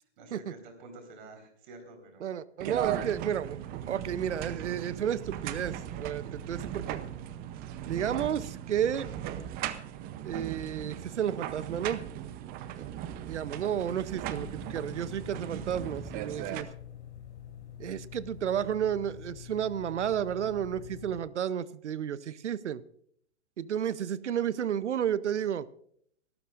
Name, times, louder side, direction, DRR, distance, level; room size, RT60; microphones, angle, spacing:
voice 1, 0.2-2.3, right 2 dB, 50° right, 5 dB, 4.4 m, -49 dB
voice 2, 2.2-3.6 3.9-7.0 7.9-9.1 10.2-12.0 12.8-12.9 13.3-16.7 17.8-22.8 23.6-25.7, right 9 dB, 85° right, 18 dB, 0.8 m, -32 dB
sound 1, 2.6-16.6, right 11 dB, 25° right, 0.7 m, -38 dB
sound 2, 14.3-21.2, left 9 dB, 75° left, 3.1 m, -46 dB
24.5 x 13.0 x 2.5 m, 0.66 s
hypercardioid pair, 125°, 34 cm